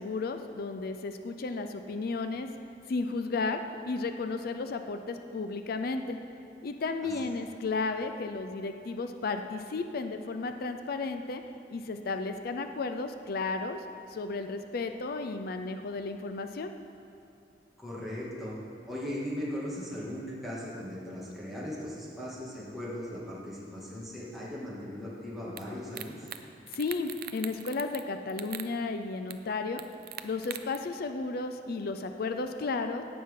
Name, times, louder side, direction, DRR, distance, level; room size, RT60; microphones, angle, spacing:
voice 1, 0.0-2.5 2.9-6.2 6.6-11.4 11.7-13.8 14.1-16.7 26.7-29.8 30.2-33.0, left 3 dB, 55° left, 7 dB, 0.4 m, -33 dB
voice 2, 17.8-18.5 18.9-26.3, equal, ahead, -8 dB, 2.1 m, -38 dB
sound 1, 25.6-25.7 25.9-26.4 26.7-28.0 28.3-28.7 29.3-29.4 29.8-30.8, right 12 dB, 55° right, 0.5 m, -40 dB
16.5 x 6.1 x 3.7 m, 2.8 s
head